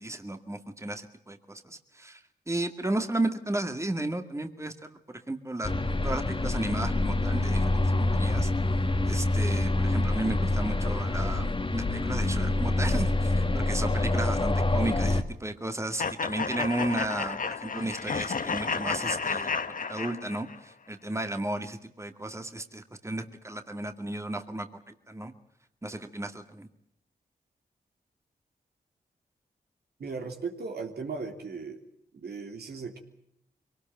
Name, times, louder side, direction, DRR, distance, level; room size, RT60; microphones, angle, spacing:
voice 1, 0.0-5.7 6.0-8.5 9.0-19.6 19.9-25.3 25.8-26.7, right 1 dB, 15° right, 6 dB, 2.2 m, -34 dB
sound 1, 5.6-15.2, left 2 dB, 30° left, 2.1 m, -26 dB
sound 2, 16.0-20.6, left 5 dB, 55° left, 1.3 m, -32 dB
voice 2, 30.0-31.8 32.1-33.0, right 4 dB, 75° right, 3 dB, 3.3 m, -37 dB
23.0 x 18.5 x 9.1 m, 0.76 s
cardioid pair, 45°, 17 cm